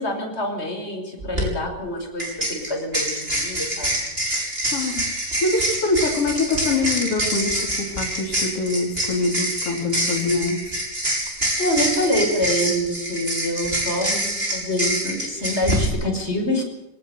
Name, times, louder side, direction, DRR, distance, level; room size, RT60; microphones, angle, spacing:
voice 1, 0.0-4.5 11.6-16.6, left 1 dB, 20° left, 2 dB, 5.6 m, -26 dB
sound 1, 1.2-1.4 2.2-15.9, right 1 dB, 15° right, 6.6 m, -26 dB
voice 2, 4.7-5.1 5.4-10.7, left 3 dB, 45° left, 0 dB, 4.3 m, -24 dB
21.5 x 19.0 x 8.3 m, 0.89 s
omnidirectional pair, 3.7 m